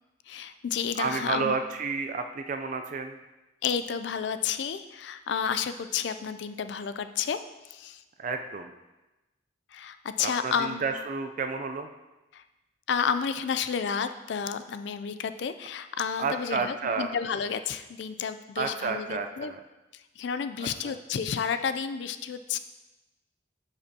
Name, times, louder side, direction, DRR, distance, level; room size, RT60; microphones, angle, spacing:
voice 1, 0.3-1.6 3.6-7.4 7.7-8.0 9.7-10.9 12.3-12.4 12.9-19.5 19.9-22.6, left 7 dB, 65° left, 11 dB, 0.3 m, -31 dB
voice 2, 1.0-3.2 8.2-8.7 10.2-11.9 16.2-17.1 18.6-19.6 20.6-20.9, right 4 dB, 40° right, 6 dB, 0.4 m, -31 dB
10.0 x 5.2 x 2.8 m, 1.0 s
head